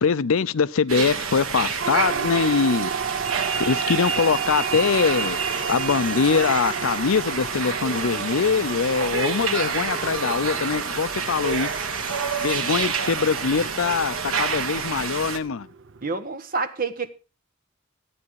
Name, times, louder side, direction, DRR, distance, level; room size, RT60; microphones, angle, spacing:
voice 1, 0.0-2.9 3.6-5.4 5.7-11.7 12.4-15.7, left 5 dB, 75° left, 0.5 m, -23 dB
sound 1, 0.9-15.4, right 6 dB, 85° right, 1.5 m, -28 dB
Siren, 1.8-16.1, right 6 dB, 65° right, 0.7 m, -34 dB
sound 2, 4.6-14.6, left 4 dB, 25° left, 0.9 m, -42 dB
voice 2, 16.0-17.1, right 4 dB, 45° right, 1.2 m, -28 dB
13.5 x 9.6 x 4.7 m
head